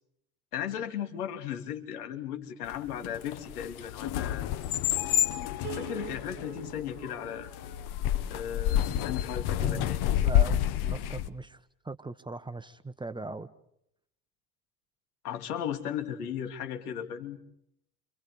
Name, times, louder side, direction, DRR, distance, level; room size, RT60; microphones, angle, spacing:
voice 1, 0.5-4.4 5.7-7.5 8.3-10.0 15.2-17.4, left 9 dB, 75° left, 6 dB, 3.0 m, -36 dB
sound 1, 2.7-11.3, left 11 dB, 55° left, 1.4 m, -29 dB
Piano, 5.6-8.9, right 13 dB, 40° right, 2.1 m, -46 dB
voice 2, 9.5-13.5, right 2 dB, 10° right, 10 dB, 1.3 m, -40 dB
30.0 x 27.0 x 4.9 m, 0.74 s
hypercardioid pair, 80°, 45 cm